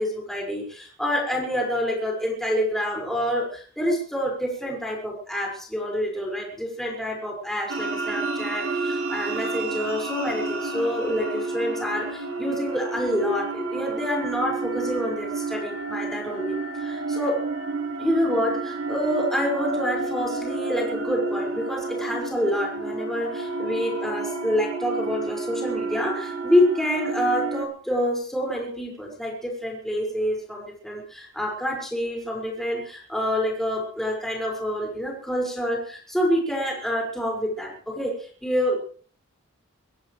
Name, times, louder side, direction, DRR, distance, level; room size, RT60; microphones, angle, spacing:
voice 1, 0.0-17.4 18.0-38.8, equal, ahead, -1 dB, 6.0 m, -27 dB
sound 1, 7.7-27.6, right 3 dB, 85° right, 4.6 m, -30 dB
24.5 x 16.5 x 3.4 m, 0.44 s
head